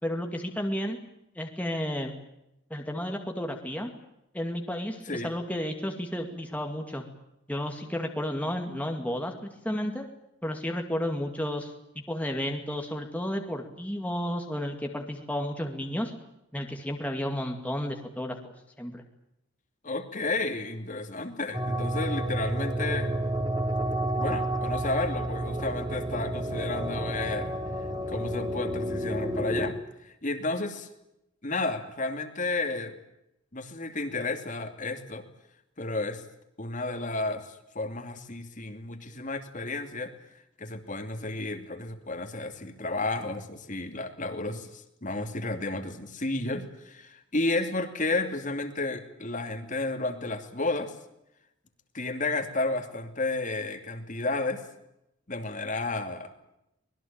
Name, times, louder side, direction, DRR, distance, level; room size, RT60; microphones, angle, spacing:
voice 1, 0.0-1.0 1.4-2.1 2.7-3.9 4.3-7.0 7.5-10.1 10.4-11.7 12.1-16.1 16.5-18.5 18.8-19.0, equal, 5° left, 3 dB, 2.3 m, -32 dB
voice 2, 19.8-23.1 24.2-27.6 28.1-30.9 31.4-32.9 33.5-35.2 35.8-36.2 36.6-40.1 40.6-50.9 51.9-54.6 55.3-56.3, left 2 dB, 40° left, 6 dB, 2.8 m, -32 dB
sound 1, 21.5-29.7, right 1 dB, 20° right, 3.5 m, -30 dB
24.5 x 21.0 x 8.8 m, 0.83 s
head